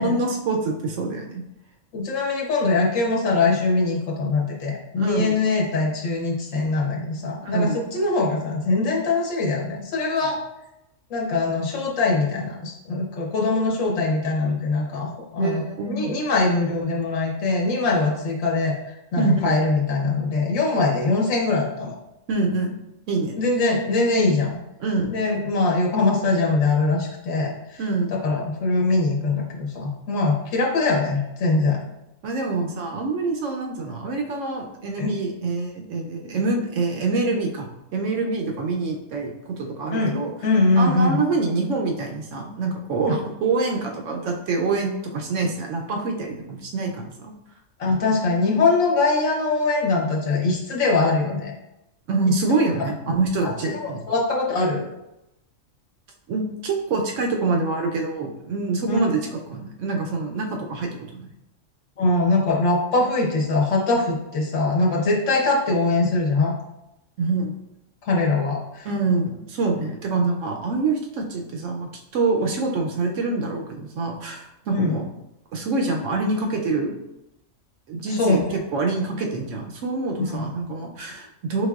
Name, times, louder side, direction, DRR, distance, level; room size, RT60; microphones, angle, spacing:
voice 1, 0.0-1.4 5.0-5.3 7.4-7.9 15.4-16.0 19.2-19.5 22.3-22.8 23.1-23.4 24.8-25.1 27.8-28.1 32.2-40.3 40.8-47.3 52.1-54.0 56.3-61.3 67.2-67.6 68.8-75.0 75.5-77.0 77.9-78.4 78.7-81.7, right 3 dB, 75° right, 1 dB, 0.9 m, -25 dB
voice 2, 1.9-10.4 11.1-15.1 15.3-22.0 23.4-24.5 25.1-27.8 28.2-31.8 35.0-35.2 39.9-40.2 40.4-41.2 43.0-43.1 47.8-51.5 53.4-53.5 53.8-54.9 58.9-59.0 62.0-66.5 68.0-68.9 74.7-75.0 78.1-78.5 80.3-80.5, left 3 dB, 75° left, -1 dB, 1.2 m, -22 dB
5.2 x 3.4 x 2.3 m, 0.89 s
omnidirectional pair, 1.3 m